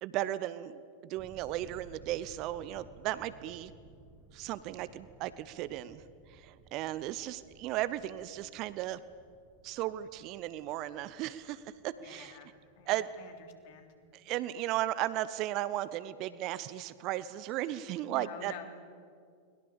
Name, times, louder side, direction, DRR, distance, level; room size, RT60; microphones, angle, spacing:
voice 1, 0.0-3.7 4.3-6.0 6.3-9.0 9.6-12.4 12.9-13.1 14.1-18.5, right 14 dB, 40° right, 16 dB, 0.9 m, -35 dB
sound 1, 1.2-14.8, right 4 dB, 25° right, 2.9 m, -59 dB
voice 2, 12.0-13.9 18.1-18.6, left 7 dB, 50° left, 5 dB, 3.3 m, -49 dB
29.5 x 22.0 x 7.1 m, 2.2 s
figure-of-eight pair, 90°, 0 cm